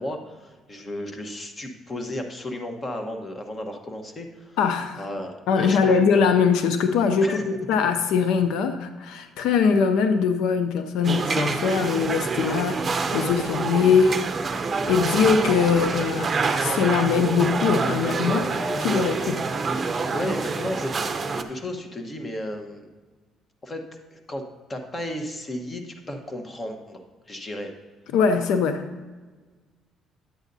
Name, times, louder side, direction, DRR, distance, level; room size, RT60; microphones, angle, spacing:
voice 1, 0.0-4.6 5.0-5.9 7.2-7.4 20.1-22.9 23.6-23.8 24.1-24.4 24.7-27.0 27.3-27.7, left 1 dB, 25° left, 5 dB, 1.1 m, -34 dB
voice 2, 4.6-5.0 5.5-14.2 14.9-19.4 28.1-28.9, left 6 dB, 85° left, 9 dB, 0.5 m, -22 dB
sound 1, 11.0-21.4, right 4 dB, 30° right, 0.6 m, -27 dB
10.5 x 8.1 x 2.7 m, 1.3 s
cardioid pair, 110°, 0 cm